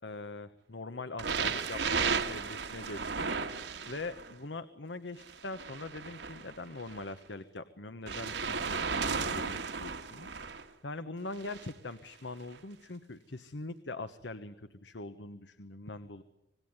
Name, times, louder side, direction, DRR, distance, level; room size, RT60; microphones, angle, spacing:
voice 1, 0.0-3.3 3.9-16.2, left 2 dB, 85° left, 11 dB, 1.2 m, -43 dB
sound 1, 1.2-4.3 5.2-7.0 8.1-10.6 11.4-11.7 12.5-12.6, right 5 dB, 85° right, 1.9 m, -34 dB
26.5 x 20.0 x 9.6 m, 0.86 s
head